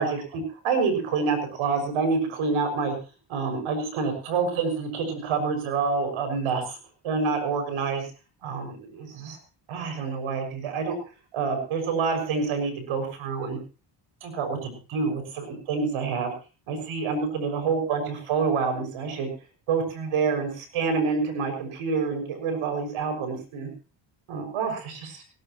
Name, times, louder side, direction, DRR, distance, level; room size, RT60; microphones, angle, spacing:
voice 1, 0.0-2.9 3.3-6.8 7.0-8.1 8.4-9.4 9.7-10.9 11.3-13.6 14.2-16.3 16.7-19.3 19.7-23.7 24.3-25.2, right 5 dB, 75° right, 6 dB, 6.5 m, -27 dB
18.5 x 18.5 x 3.1 m, 0.34 s
supercardioid pair, 80°, 49 cm